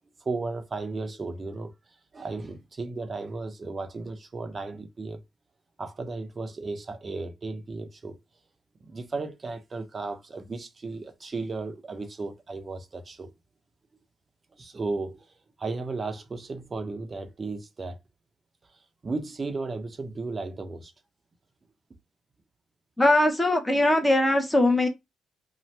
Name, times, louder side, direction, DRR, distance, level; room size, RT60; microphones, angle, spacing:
voice 1, 0.2-1.7 2.1-5.2 5.8-8.2 8.8-13.3 14.6-18.0 19.0-20.9, right 3 dB, 35° right, 0.7 m, -35 dB
voice 2, 23.0-24.9, left 1 dB, 10° left, 0.8 m, -21 dB
2.8 x 2.2 x 3.2 m
cardioid pair, 90°, 0 cm